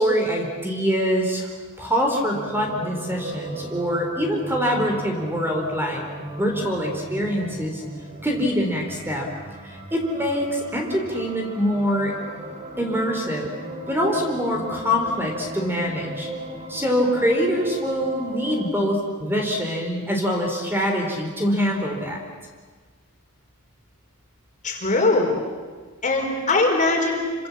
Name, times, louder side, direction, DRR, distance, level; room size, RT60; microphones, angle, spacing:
voice 1, 0.0-1.5 1.8-6.0 6.4-7.8 8.2-9.3 9.6-12.1 12.8-13.5 13.9-16.3 16.7-22.2, equal, 10° right, 1 dB, 4.2 m, -24 dB
sound 1, 2.3-18.7, right 1 dB, 30° right, 4.0 m, -36 dB
voice 2, 24.6-25.4 26.0-27.5, left 2 dB, 35° left, 1 dB, 4.6 m, -21 dB
28.5 x 26.0 x 7.5 m, 1.5 s
head